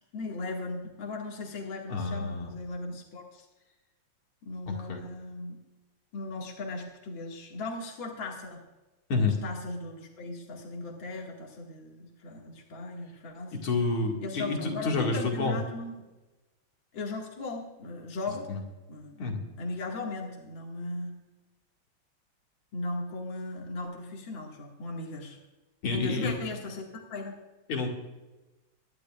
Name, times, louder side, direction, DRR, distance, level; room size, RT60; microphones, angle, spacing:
voice 1, 0.1-3.5 4.4-5.6 6.1-8.6 9.2-13.5 14.2-15.9 16.9-18.5 18.9-19.2 19.6-21.1 22.7-25.4 25.9-27.4, left 2 dB, 65° left, -1 dB, 2.8 m, -37 dB
voice 2, 1.9-2.5 4.7-5.0 9.1-9.4 13.5-15.6 18.5-18.6 19.2-19.4 25.8-26.3 27.7-27.9, left 3 dB, 80° left, 1 dB, 3.0 m, -29 dB
24.5 x 11.5 x 2.5 m, 1.1 s
omnidirectional pair, 2.3 m